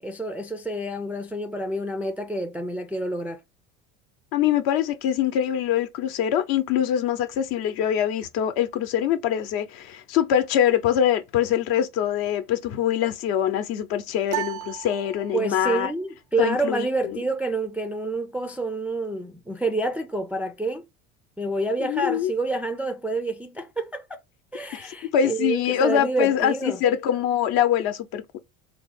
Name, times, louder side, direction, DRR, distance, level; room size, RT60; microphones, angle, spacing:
voice 1, 0.0-3.4 15.3-20.8 21.4-24.2 24.5-26.8, right 2 dB, 5° right, 0.3 m, -28 dB
voice 2, 4.3-15.9 16.4-16.9 21.8-22.3 25.0-28.4, left 10 dB, 60° left, 0.8 m, -24 dB
sound 1, 14.3-15.8, right 14 dB, 80° right, 0.6 m, -34 dB
3.6 x 2.0 x 3.4 m
hypercardioid pair, 75°, 41 cm